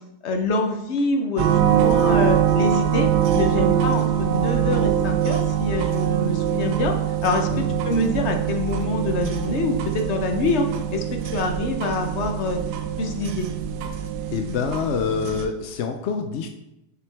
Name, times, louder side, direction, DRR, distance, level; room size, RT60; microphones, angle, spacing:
voice 1, 0.2-6.9 7.2-12.6 13.0-13.5, left 2 dB, 50° left, 4 dB, 1.0 m, -25 dB
sound 1, 1.4-15.5, right 9 dB, 90° right, 1.2 m, -23 dB
voice 2, 14.3-16.5, left 6 dB, 70° left, 5 dB, 0.6 m, -26 dB
6.8 x 6.1 x 3.4 m, 0.89 s
omnidirectional pair, 1.7 m